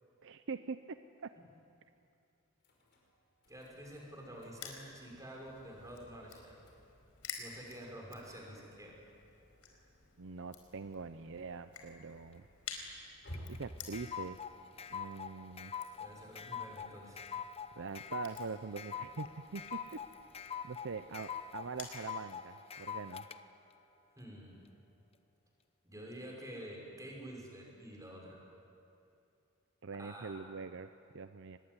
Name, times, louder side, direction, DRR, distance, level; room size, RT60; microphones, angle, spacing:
voice 1, 0.2-1.0 1.2-1.3 10.2-12.4 13.5-14.4 14.9-15.7 17.8-20.0 20.6-23.2 29.8-31.6, right 4 dB, 60° right, 10 dB, 0.7 m, -43 dB
sound 1, 2.6-20.6, equal, 55° left, 5.4 m, -58 dB
Crushing, 3.5-22.0, left 6 dB, 80° left, 4.5 m, -53 dB
voice 2, 3.5-6.6 7.4-9.0 16.0-17.2 24.2-24.6 25.8-28.4 29.9-30.3, equal, 15° right, -1 dB, 6.0 m, -49 dB
sound 2, 13.3-23.4, left 7 dB, 25° left, 0.8 m, -44 dB
24.5 x 20.5 x 9.7 m, 2.6 s
head